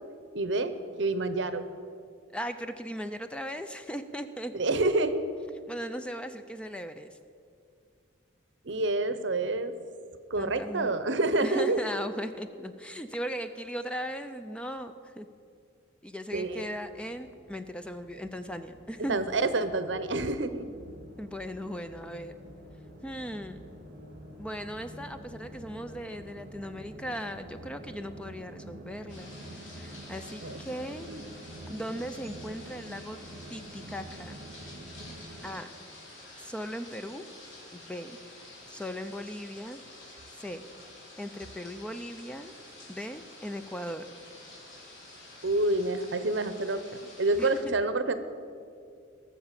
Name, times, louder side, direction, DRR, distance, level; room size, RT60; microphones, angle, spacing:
voice 1, 0.3-1.7 4.5-5.2 8.6-9.7 10.3-11.8 16.3-16.7 19.1-20.7 30.4-30.6 31.1-31.2 45.4-46.8 47.2-48.1, right 2 dB, 70° right, 12 dB, 0.8 m, -28 dB
voice 2, 2.3-4.5 5.7-7.1 10.4-10.9 11.4-15.3 16.0-19.2 21.2-22.3 23.0-23.6 24.4-31.1 31.7-33.2 33.5-34.4 35.4-35.7 36.4-37.2 37.7-38.2 38.7-39.8 40.3-40.6 41.2-42.5 42.9-44.1 47.4-47.5, equal, 5° left, 9 dB, 0.4 m, -38 dB
sound 1, 16.3-35.5, right 1 dB, 45° right, 2.4 m, -47 dB
sound 2, 29.1-47.6, left 2 dB, 80° left, 3.7 m, -49 dB
18.0 x 7.1 x 7.4 m, 2.3 s
head